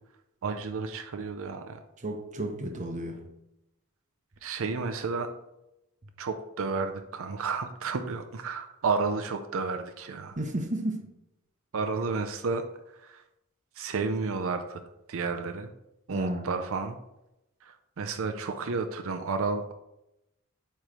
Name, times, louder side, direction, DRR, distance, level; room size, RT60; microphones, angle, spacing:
voice 1, 0.4-1.8 4.4-5.3 6.2-10.4 11.7-12.6 13.0-13.2 13.8-14.8 15.1-15.7 16.1-17.0 17.6-19.7, right 4 dB, 65° right, 7 dB, 0.5 m, -31 dB
voice 2, 2.0-3.3 10.4-11.1 16.1-16.6, right 1 dB, 35° right, 3 dB, 0.8 m, -33 dB
8.8 x 3.1 x 4.9 m, 0.89 s
head